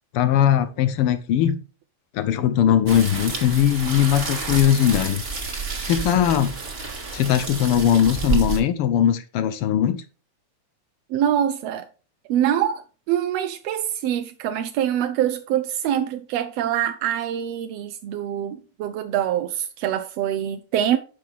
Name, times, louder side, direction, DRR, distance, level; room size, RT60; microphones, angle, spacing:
voice 1, 0.1-1.6 2.1-5.2 5.8-6.5 7.1-10.0, left 10 dB, 85° left, 1.2 m, -20 dB
sound 1, 2.9-8.6, right 4 dB, 30° right, 1.3 m, -29 dB
voice 2, 11.1-11.9 12.3-12.8 13.1-21.0, right 10 dB, 75° right, 1.6 m, -24 dB
10.5 x 5.9 x 3.5 m
omnidirectional pair, 3.3 m